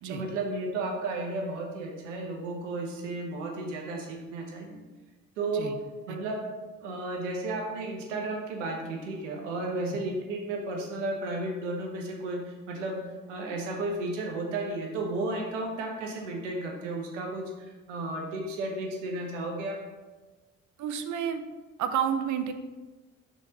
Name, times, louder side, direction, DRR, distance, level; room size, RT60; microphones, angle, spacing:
voice 1, 0.1-4.8 5.4-6.5 6.8-13.0 13.3-19.9, right 2 dB, 85° right, 1 dB, 1.2 m, -33 dB
voice 2, 20.8-21.4 21.8-22.5, right 8 dB, 55° right, 8 dB, 0.7 m, -30 dB
6.4 x 4.4 x 4.1 m, 1.2 s
hypercardioid pair, 55°, 36 cm